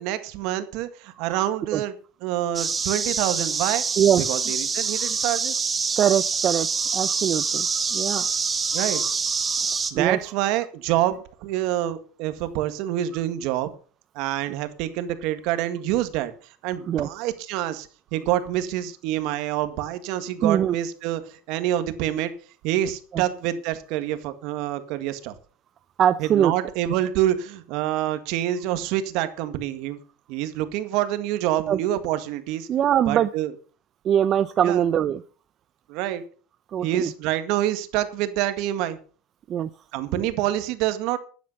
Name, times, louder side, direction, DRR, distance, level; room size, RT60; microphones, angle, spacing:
voice 1, 0.0-1.9 2.2-3.8 4.2-5.7 8.7-9.0 9.9-13.7 14.2-16.3 16.6-22.3 22.6-25.3 26.2-30.0 30.3-32.7 33.1-33.5 34.6-34.8 35.9-36.2 36.8-39.0 39.9-41.2, right 13 dB, 60° right, 10 dB, 1.9 m, -26 dB
sound 1, 2.5-9.9, right 5 dB, 20° right, 1.6 m, -26 dB
voice 2, 6.0-8.4 8.7-9.1 9.4-10.2 16.9-17.1 20.4-20.7 23.1-23.2 26.0-26.5 31.7-31.8 32.7-33.3 34.0-35.2 36.7-37.1 39.5-39.7 40.2-40.3, right 9 dB, 35° right, 12 dB, 0.6 m, -23 dB
13.0 x 9.3 x 5.5 m, 0.39 s
supercardioid pair, 130°, 0 cm